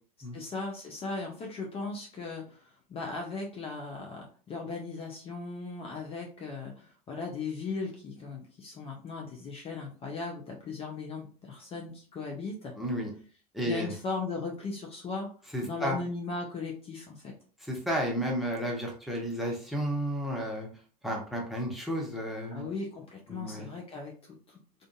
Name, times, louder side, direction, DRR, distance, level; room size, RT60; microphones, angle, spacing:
voice 1, 0.3-12.7 13.7-15.3 15.6-17.3 22.5-24.9, left 3 dB, 30° left, -1 dB, 0.6 m, -37 dB
voice 2, 12.7-13.1 13.5-13.9 15.5-16.0 17.6-20.7 21.0-22.6 23.3-23.7, equal, ahead, -1 dB, 0.9 m, -32 dB
2.5 x 2.5 x 2.2 m, 0.40 s
hypercardioid pair, 85°, 20 cm